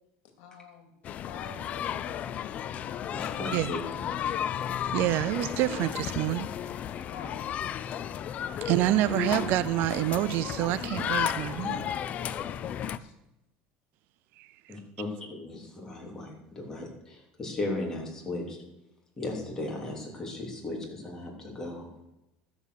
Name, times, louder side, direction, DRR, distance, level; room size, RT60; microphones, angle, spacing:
voice 1, 0.4-0.9 1.2-2.8 3.2-3.3 3.7-3.9 7.0-7.6 7.9-8.3 12.3-13.1, left 6 dB, 70° left, 2.4 m, -48 dB
sound 1, 1.0-13.0, left 9 dB, 40° left, 0.5 m, -33 dB
voice 2, 3.1-4.1 14.7-18.6 19.2-21.9, left 2 dB, 15° left, 3.4 m, -36 dB
voice 3, 4.9-6.5 8.6-11.9 14.4-14.5, right 15 dB, 60° right, 0.5 m, -27 dB
13.5 x 7.3 x 6.5 m
cardioid pair, 135°, 4 cm